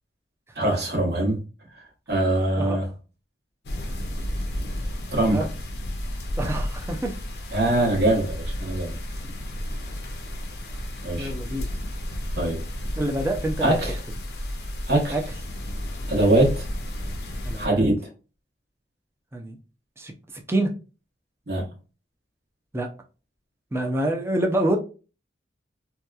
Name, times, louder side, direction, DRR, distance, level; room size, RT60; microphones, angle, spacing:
voice 1, 0.6-1.4 2.1-2.9 5.1-5.5 7.5-8.9 11.0-11.3 12.4-12.6 13.6-14.0 14.9-15.2 16.1-16.7 17.6-17.9 21.5-21.6, right 1 dB, 60° right, 1.1 m, -22 dB
sound 1, 3.6-17.7, equal, 60° left, 0.5 m, -32 dB
voice 2, 6.4-7.2 9.2-9.3 11.2-11.7 13.0-13.8 15.1-15.2 17.4-17.8 19.3-19.6 20.0-20.1 20.5-20.7 22.7-22.9 23.7-24.8, right 1 dB, 15° right, 0.4 m, -26 dB
2.8 x 2.2 x 2.2 m
head